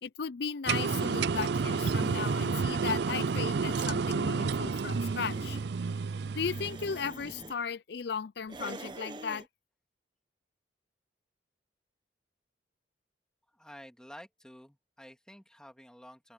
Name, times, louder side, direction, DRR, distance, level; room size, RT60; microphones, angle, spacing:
voice 1, 0.0-5.6 6.4-9.5, left 6 dB, 65° left, 0.5 m, -36 dB
sound 1, 0.7-7.0, right 5 dB, 65° right, 0.4 m, -30 dB
sound 2, 1.2-5.7 6.3-7.6 8.5-9.5, right 1 dB, 25° right, 1.1 m, -46 dB
voice 2, 13.5-16.3, equal, 5° left, 2.4 m, -51 dB
open air
head